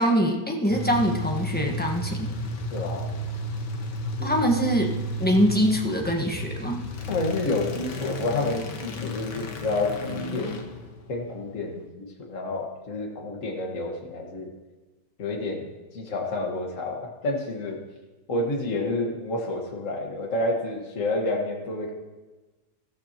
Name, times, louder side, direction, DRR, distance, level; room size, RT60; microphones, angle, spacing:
voice 1, 0.0-2.3 4.2-6.8, equal, 5° left, 0 dB, 1.2 m, -24 dB
sound 1, 0.7-11.8, left 1 dB, 85° left, 1.8 m, -33 dB
voice 2, 2.7-3.1 4.2-4.3 7.1-10.6 11.1-14.5 15.2-15.6 15.9-17.8 18.3-21.9, left 2 dB, 50° left, 0 dB, 1.9 m, -29 dB
14.0 x 14.0 x 3.0 m, 1.2 s
omnidirectional pair, 1.8 m